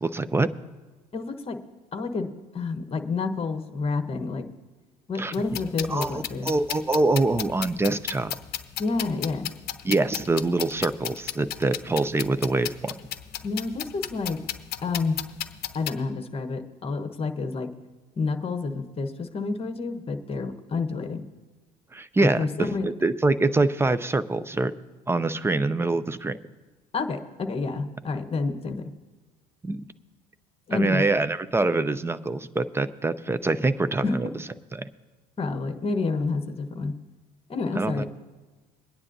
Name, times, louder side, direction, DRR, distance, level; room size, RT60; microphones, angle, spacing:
voice 1, 0.0-0.5 5.2-5.3 5.9-8.3 9.8-13.0 21.9-24.7 25.1-26.4 29.6-29.8 30.7-34.3 34.7-34.9 37.8-38.0, right 2 dB, 10° right, 13 dB, 0.6 m, -25 dB
voice 2, 1.1-1.6 1.9-4.5 5.1-6.5 8.8-9.5 13.4-14.4 14.8-15.2 15.7-17.7 18.2-21.2 22.2-22.9 26.9-28.8 30.7-31.0 34.0-34.2 35.4-36.9 37.5-38.0, left 4 dB, 30° left, 8 dB, 1.2 m, -29 dB
sound 1, 5.3-15.9, left 12 dB, 55° left, 0.8 m, -35 dB
23.0 x 9.7 x 2.7 m, 1.3 s
hypercardioid pair, 65°, 20 cm